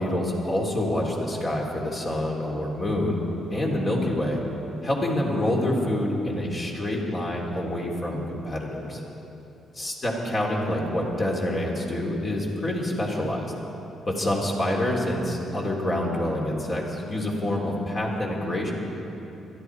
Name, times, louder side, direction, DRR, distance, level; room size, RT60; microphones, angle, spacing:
voice 1, 0.0-3.2 3.5-4.4 4.8-9.0 9.8-13.5 14.1-18.7, left 1 dB, 40° left, -2 dB, 3.2 m, -27 dB
22.5 x 13.0 x 4.7 m, 3.0 s
cardioid pair, 90°, 0 cm